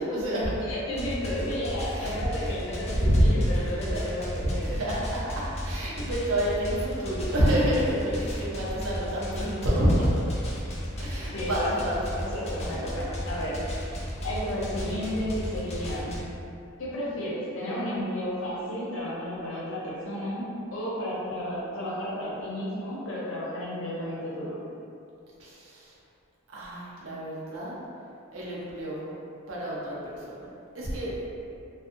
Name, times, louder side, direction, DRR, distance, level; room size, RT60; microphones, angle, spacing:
voice 1, 0.0-0.6 1.9-2.5 3.0-3.2 4.4-10.1 11.0-12.0 12.7-12.8 25.4-25.9 26.5-27.7 28.3-29.2 29.5-30.3 30.7-31.2, equal, 75° right, -6 dB, 0.7 m, -28 dB
voice 2, 0.7-4.7 11.3-11.7 12.2-13.6 13.9-14.0 14.2-16.2 16.8-20.4 20.7-24.6, equal, 75° left, -7 dB, 0.7 m, -32 dB
sound 1, 0.9-16.2, equal, 30° left, 0.4 m, -35 dB
2.5 x 2.2 x 2.6 m, 2.7 s
head